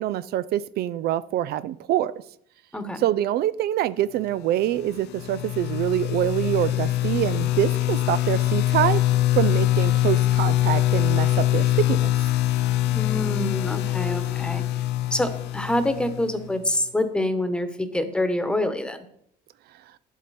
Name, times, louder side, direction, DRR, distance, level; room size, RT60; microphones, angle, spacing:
voice 1, 0.0-2.1 3.0-9.0 9.4-12.1, right 13 dB, 70° right, 16 dB, 0.4 m, -25 dB
voice 2, 2.7-3.0 12.9-14.6 15.1-19.0, left 1 dB, 5° left, 9 dB, 1.1 m, -26 dB
sound 1, 4.7-16.5, left 14 dB, 80° left, 0.6 m, -23 dB
10.5 x 8.1 x 4.2 m, 0.68 s
cardioid pair, 110°, 17 cm